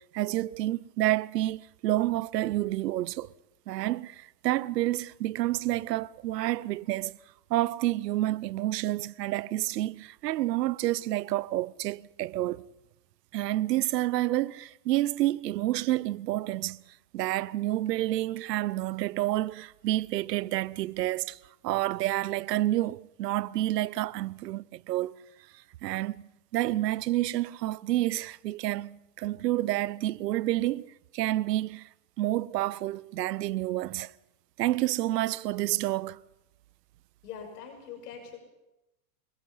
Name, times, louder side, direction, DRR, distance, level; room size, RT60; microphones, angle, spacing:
voice 1, 0.0-3.3 3.7-7.2 7.5-12.6 13.3-16.8 17.1-21.4 21.6-25.1 25.8-31.9 32.2-34.1 34.6-36.2, right 15 dB, 80° right, 0.8 m, -29 dB
voice 2, 37.2-38.4, left 7 dB, 70° left, 6.1 m, -42 dB
26.5 x 21.0 x 5.7 m
supercardioid pair, 135°, 48 cm